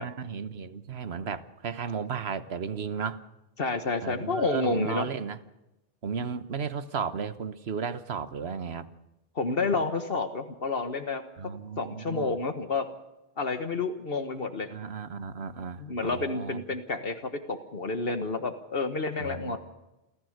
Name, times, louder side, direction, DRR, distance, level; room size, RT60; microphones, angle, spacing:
voice 1, 0.0-3.2 4.0-5.4 6.0-8.9 11.4-12.3 14.7-16.6 19.2-19.6, right 6 dB, 75° right, 12 dB, 1.3 m, -34 dB
voice 2, 3.6-5.1 9.3-11.2 11.8-12.9 13.4-14.7 15.8-17.2 17.5-19.6, left 3 dB, 65° left, 8 dB, 1.5 m, -29 dB
28.5 x 14.5 x 6.5 m, 0.94 s
omnidirectional pair, 1.1 m